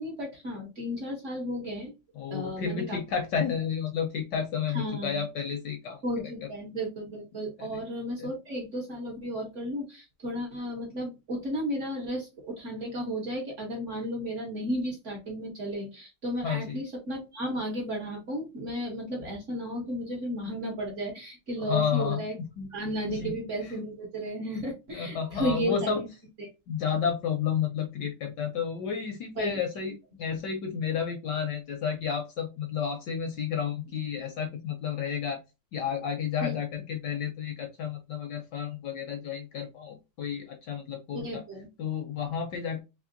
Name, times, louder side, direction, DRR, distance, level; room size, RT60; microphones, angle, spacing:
voice 1, 0.0-1.9 2.3-3.0 4.7-5.3 6.0-22.3 22.7-26.1 26.4-26.5 29.3-29.6 36.4-36.6 41.1-41.7, equal, 50° right, 0 dB, 0.9 m, -34 dB
voice 2, 2.2-6.0 7.6-7.7 8.2-8.3 16.4-16.8 21.6-22.2 22.6-22.7 23.1-23.4 24.9-26.0 26.7-35.4 35.7-41.4 41.8-42.8, left 7 dB, 70° left, 5 dB, 1.0 m, -31 dB
3.5 x 3.1 x 2.5 m, 0.26 s
omnidirectional pair, 2.4 m